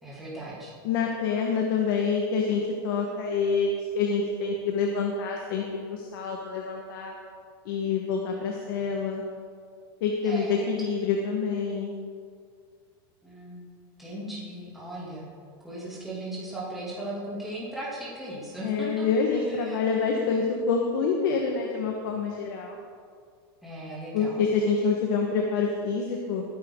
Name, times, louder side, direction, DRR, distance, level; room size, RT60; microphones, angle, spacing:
voice 1, 0.0-0.7 10.2-10.7 13.2-13.7 14.0-15.2 15.6-19.1 19.5-19.8 23.6-24.4, right 1 dB, ahead, -8 dB, 2.8 m, -37 dB
voice 2, 0.8-5.6 5.9-7.1 7.6-9.2 10.0-11.9 18.6-22.8 24.1-26.4, left 5 dB, 60° left, 1 dB, 1.6 m, -27 dB
19.5 x 10.5 x 3.9 m, 2.1 s
supercardioid pair, 165°, 13 cm